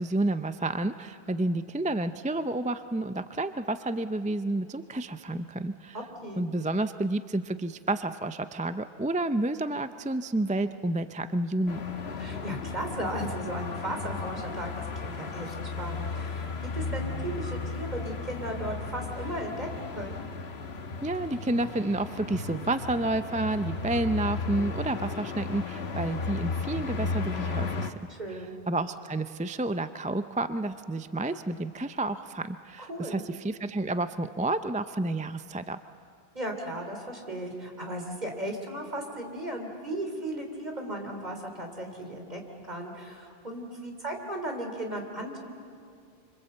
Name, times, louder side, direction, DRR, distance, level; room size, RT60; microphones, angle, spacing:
voice 1, 0.0-6.0 6.4-11.8 21.0-27.9 28.7-35.8, right 2 dB, 10° right, 10 dB, 0.3 m, -30 dB
sound 1, 11.7-27.9, left 4 dB, 85° left, 1.5 m, -35 dB
voice 2, 12.2-20.2 28.1-28.6 32.8-33.2 36.4-45.4, right 1 dB, 45° right, 2 dB, 3.4 m, -36 dB
26.0 x 25.5 x 7.9 m, 2.3 s
omnidirectional pair, 1.0 m